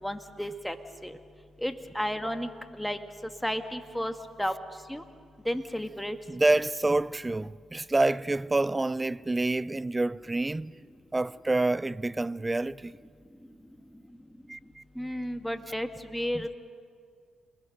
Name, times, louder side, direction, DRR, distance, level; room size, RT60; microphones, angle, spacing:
voice 1, 0.0-0.8 1.0-1.2 1.6-2.5 2.8-3.0 3.4-4.1 4.4-4.5 4.9-5.0 5.5-6.2 15.0-16.6, equal, 5° left, 1.8 m, -32 dB
voice 2, 6.3-10.7 11.1-12.9 14.5-14.8 16.3-16.4, right 2 dB, 20° right, 0.5 m, -27 dB
28.0 x 21.0 x 6.6 m
supercardioid pair, 70°, 0 cm